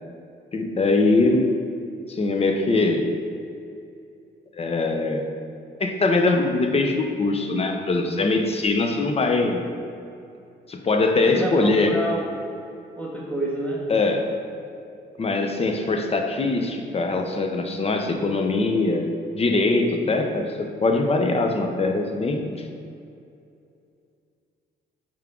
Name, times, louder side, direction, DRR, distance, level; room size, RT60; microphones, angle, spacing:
voice 1, 0.5-1.5 2.1-3.1 4.6-5.2 5.8-9.6 10.7-12.0 13.9-14.4 15.2-22.6, left 3 dB, 30° left, 4 dB, 0.6 m, -22 dB
voice 2, 11.2-12.3 13.0-13.8, right 1 dB, 5° left, -3 dB, 1.4 m, -28 dB
5.7 x 4.5 x 3.6 m, 2.5 s
cardioid pair, 90°, 20 cm